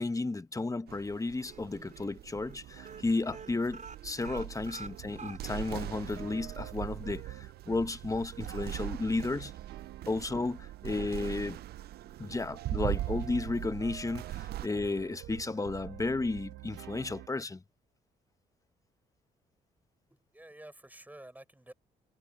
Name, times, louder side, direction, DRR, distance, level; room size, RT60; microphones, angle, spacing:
voice 1, 0.0-9.5 10.1-11.6 12.2-17.6, left 3 dB, 20° left, 1.2 m, -33 dB
sound 1, 0.9-14.7, right 13 dB, 70° right, 0.6 m, -41 dB
sound 2, 1.0-1.6 1.9-2.1 2.4-2.6 2.8-5.8 6.2-6.3 6.6-6.7, right 5 dB, 45° right, 5.8 m, -47 dB
sound 3, 2.7-17.3, right 15 dB, 85° right, 1.5 m, -49 dB
voice 2, 20.1-21.7, right 1 dB, 10° right, 5.5 m, -51 dB
supercardioid pair, 65°, 17 cm